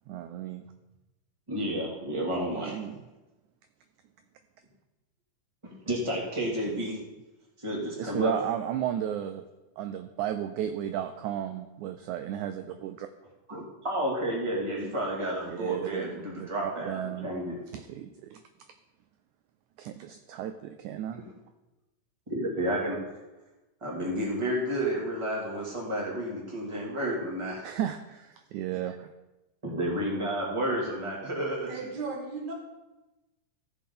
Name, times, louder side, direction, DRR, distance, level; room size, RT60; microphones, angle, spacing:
voice 1, 0.1-0.6 2.6-3.0 8.0-9.4 9.8-13.1 15.5-16.0 16.4-17.3 17.7-18.4 19.8-21.2 27.6-29.1, right 11 dB, 85° right, 8 dB, 1.7 m, -34 dB
voice 2, 1.5-2.7 5.6-7.0 7.6-8.3 13.5-17.6 22.3-23.0 23.8-27.7 29.6-31.7, right 1 dB, 10° right, -3 dB, 1.7 m, -31 dB
voice 3, 31.7-32.5, right 4 dB, 45° right, 0 dB, 1.4 m, -36 dB
15.0 x 7.0 x 3.8 m, 1.0 s
omnidirectional pair, 3.9 m